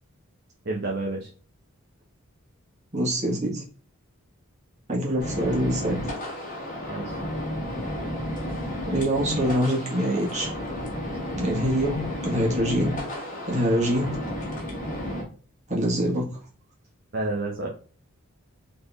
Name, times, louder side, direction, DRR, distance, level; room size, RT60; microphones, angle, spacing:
voice 1, 0.6-1.3 6.9-7.2 17.1-17.7, right 2 dB, 45° right, -1 dB, 0.7 m, -29 dB
voice 2, 2.9-3.6 4.9-6.1 8.9-10.5 11.4-12.9 13.5-14.1 15.7-16.4, equal, 30° right, -3 dB, 1.6 m, -25 dB
sound 1, 5.2-15.2, left 1 dB, 35° left, 1.4 m, -32 dB
4.2 x 3.4 x 3.5 m, 0.40 s
head